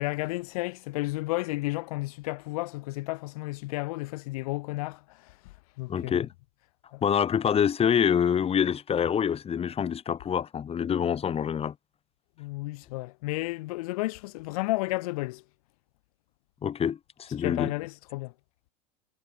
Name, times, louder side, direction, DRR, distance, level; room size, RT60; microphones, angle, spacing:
voice 1, 0.0-5.0 5.8-6.2 6.9-7.0 12.4-15.4 17.4-18.3, left 22 dB, 65° left, 7.1 m, -32 dB
voice 2, 5.9-6.3 7.0-11.7 16.6-17.7, left 8 dB, 30° left, 7.1 m, -26 dB
hypercardioid pair, 90°, 20 cm